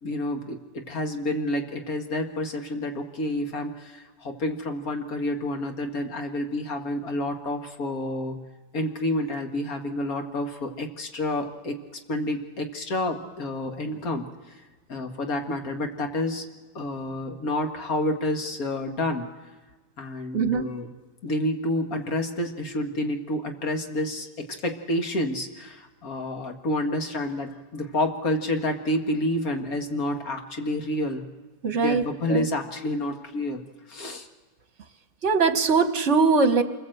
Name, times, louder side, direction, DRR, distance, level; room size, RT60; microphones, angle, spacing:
voice 1, 0.0-8.4 8.7-11.8 12.1-14.3 14.9-16.5 16.8-19.3 20.0-20.9 21.2-31.3 31.7-34.3, left 1 dB, 90° left, 4 dB, 2.2 m, -29 dB
voice 2, 20.3-20.6 31.6-32.0 32.3-32.4 35.2-36.6, right 4 dB, 55° right, 8 dB, 1.7 m, -21 dB
27.0 x 21.0 x 7.8 m, 1.3 s
omnidirectional pair, 1.5 m